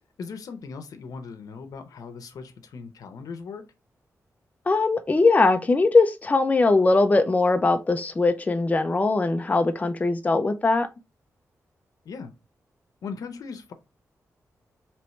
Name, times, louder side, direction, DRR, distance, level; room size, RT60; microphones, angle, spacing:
voice 1, 0.2-3.7 12.0-12.3 13.0-13.7, left 5 dB, 85° left, 0.7 m, -38 dB
voice 2, 4.7-10.9, left 3 dB, 25° left, 0.5 m, -21 dB
4.4 x 3.0 x 3.1 m
cardioid pair, 90°, 6 cm